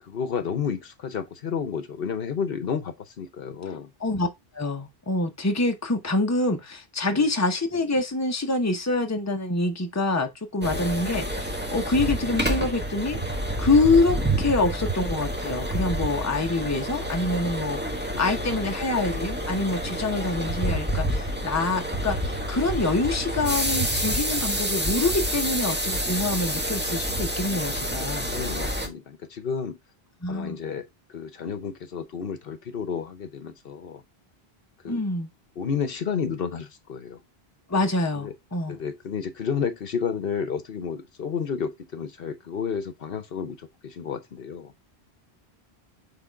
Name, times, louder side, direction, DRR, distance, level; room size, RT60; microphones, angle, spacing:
voice 1, 0.0-3.9 7.1-7.3 10.7-10.9 18.1-18.5 28.1-29.8 30.3-34.0 34.8-35.0 35.6-37.2 38.1-38.3 38.7-44.7, left 6 dB, 65° left, 1.0 m, -31 dB
voice 2, 4.5-28.3 30.2-30.6 34.9-35.3 37.7-38.8, left 2 dB, 15° left, 0.9 m, -26 dB
sound 1, 10.6-28.9, right 1 dB, 10° right, 1.3 m, -28 dB
6.1 x 3.8 x 4.5 m
omnidirectional pair, 1.1 m